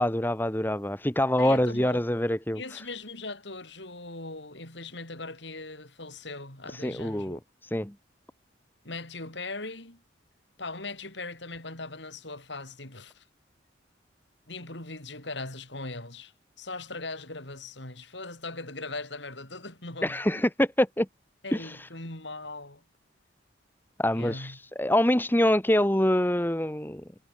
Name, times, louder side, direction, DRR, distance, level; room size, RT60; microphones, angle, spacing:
voice 1, 0.0-2.8 6.7-7.4 7.7-7.9 20.0-21.1 21.5-21.9 24.0-27.0, left 1 dB, 10° left, 1.3 m, -25 dB
voice 2, 1.4-2.1 2.5-7.4 8.8-10.0 10.6-13.2 14.5-16.3 16.6-20.2 21.4-22.8 24.1-24.6, left 3 dB, 70° left, 5.8 m, -39 dB
head